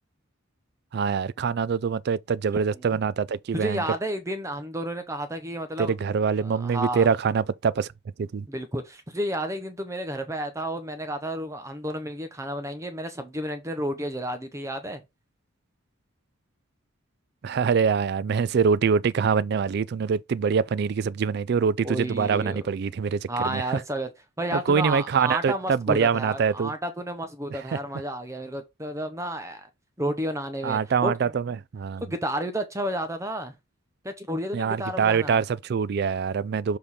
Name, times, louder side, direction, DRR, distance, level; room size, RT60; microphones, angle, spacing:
voice 1, 0.9-3.8 5.8-7.9 8.2-8.5 17.4-23.8 24.5-26.7 27.5-27.6 30.6-32.0 34.5-36.8, right 6 dB, 50° right, 0.3 m, -24 dB
voice 2, 3.5-5.9 6.4-7.1 8.5-15.0 21.8-22.6 23.3-24.1 24.4-29.7 30.0-31.3 32.0-33.5 34.0-35.4, right 1 dB, 15° right, 0.8 m, -31 dB
6.8 x 3.7 x 4.2 m
head